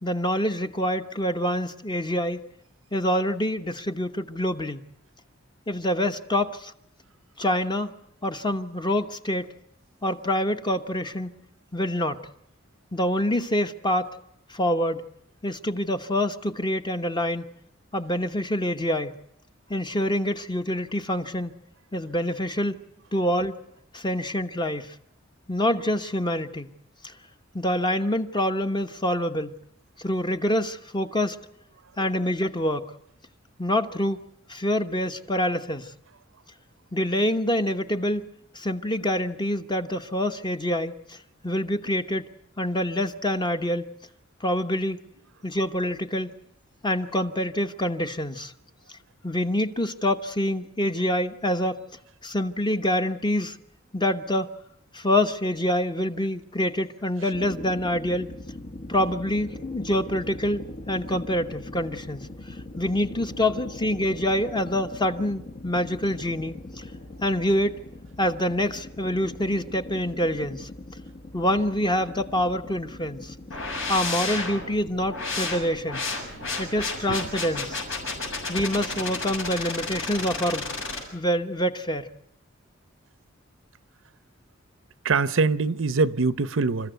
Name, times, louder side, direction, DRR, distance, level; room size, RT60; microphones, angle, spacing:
voice 1, 0.0-2.4 2.9-4.9 5.7-6.7 7.4-7.9 8.2-9.5 10.0-11.3 11.7-12.2 12.9-14.1 14.5-15.0 15.4-17.5 17.9-19.2 19.7-21.5 21.9-22.8 23.1-23.5 23.9-24.9 25.5-26.7 27.0-27.1 27.5-29.6 30.0-31.4 32.0-32.9 33.6-34.2 34.5-35.9 36.9-38.3 38.5-41.2 41.4-42.3 42.6-43.9 44.4-45.0 45.4-46.3 46.8-48.5 49.2-51.8 52.2-53.6 53.9-54.5 54.9-58.3 58.9-62.3 62.8-66.8 67.2-67.7 68.2-70.7 71.3-73.3 73.9-76.1 76.6-77.8 78.5-80.7 81.1-82.1, left 1 dB, 25° left, 1.1 m, -26 dB
sound 1, 57.3-74.1, left 2 dB, 45° left, 1.1 m, -41 dB
sound 2, 73.5-81.0, left 3 dB, 80° left, 6.8 m, -32 dB
voice 2, 85.0-86.9, right 4 dB, 75° right, 0.7 m, -23 dB
28.0 x 14.5 x 8.0 m
head